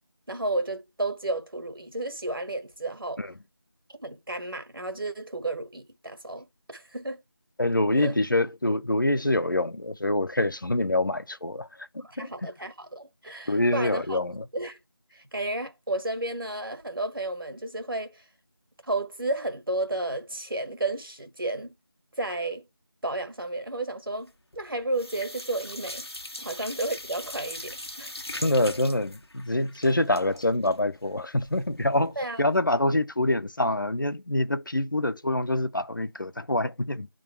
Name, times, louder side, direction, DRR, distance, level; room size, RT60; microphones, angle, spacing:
voice 1, 0.3-3.2 4.0-7.2 8.0-8.2 12.0-14.2 14.5-14.8 15.1-18.2 18.8-21.7 22.2-22.7 23.0-26.1 26.4-28.1 32.2-32.4, right 2 dB, 65° right, 1.8 m, -32 dB
voice 2, 7.6-12.5 13.5-14.4 26.4-26.5 28.3-37.1, left 1 dB, 55° left, 0.7 m, -26 dB
sound 1, 24.3-24.7 24.9-31.8 32.1-32.2 32.6-32.7, left 1 dB, 90° left, 1.3 m, -40 dB
9.5 x 3.8 x 3.2 m
figure-of-eight pair, 170°, 13 cm